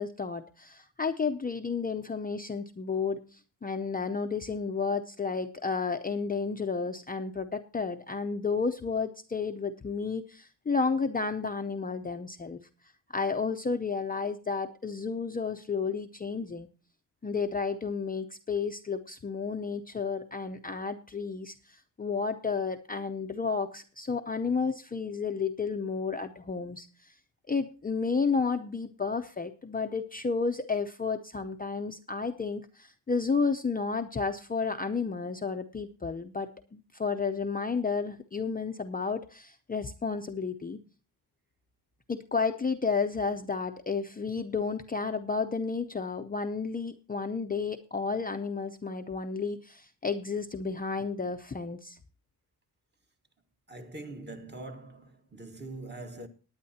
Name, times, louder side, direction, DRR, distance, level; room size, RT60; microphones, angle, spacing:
voice 1, 0.0-12.6 13.1-16.7 17.2-27.1 27.5-40.8 42.1-52.0, left 5 dB, 20° left, 0.6 m, -32 dB
voice 2, 53.7-56.3, right 2 dB, 25° right, 1.4 m, -43 dB
19.5 x 9.5 x 2.7 m
wide cardioid pair, 160°, 40 cm